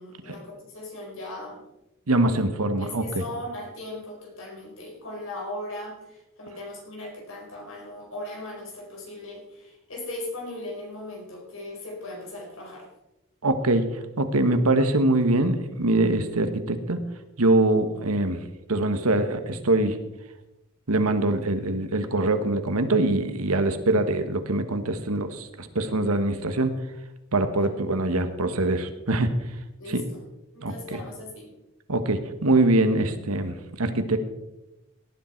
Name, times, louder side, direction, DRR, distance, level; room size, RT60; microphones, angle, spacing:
voice 1, 0.0-1.6 2.2-12.9 29.8-30.2 30.5-31.5, left 1 dB, 65° left, -1 dB, 4.8 m, -38 dB
voice 2, 2.1-3.0 13.4-13.9 14.2-17.0 17.4-18.4 18.7-20.0 20.9-26.8 27.3-29.4 29.9-30.0 30.6-31.0 31.9-34.2, right 2 dB, 85° right, 9 dB, 1.4 m, -23 dB
18.0 x 10.5 x 4.5 m, 0.96 s
head